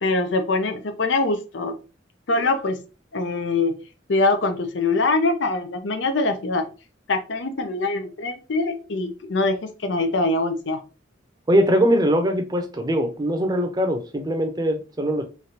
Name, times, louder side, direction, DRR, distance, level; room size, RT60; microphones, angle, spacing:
voice 1, 0.0-1.7 2.3-2.8 3.1-3.8 4.1-6.7 7.1-10.8, left 3 dB, 70° left, 0.6 m, -23 dB
voice 2, 11.5-15.2, equal, 20° right, 0.7 m, -21 dB
3.3 x 2.4 x 4.3 m
head